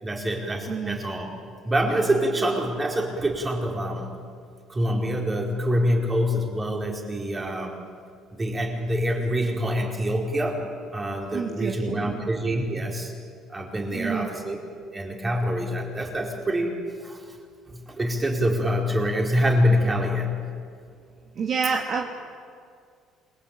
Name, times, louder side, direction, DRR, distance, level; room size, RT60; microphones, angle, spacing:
voice 1, 0.0-1.3 1.6-4.1 4.7-7.8 8.4-10.6 10.9-13.1 13.5-14.6 14.9-17.2 17.7-20.3, equal, 15° right, 0 dB, 4.5 m, -25 dB
voice 2, 0.7-1.0 11.3-12.2 13.9-14.3 21.4-22.1, right 6 dB, 45° right, 0 dB, 2.2 m, -28 dB
28.5 x 22.0 x 8.9 m, 2.2 s
cardioid pair, 140°, 0 cm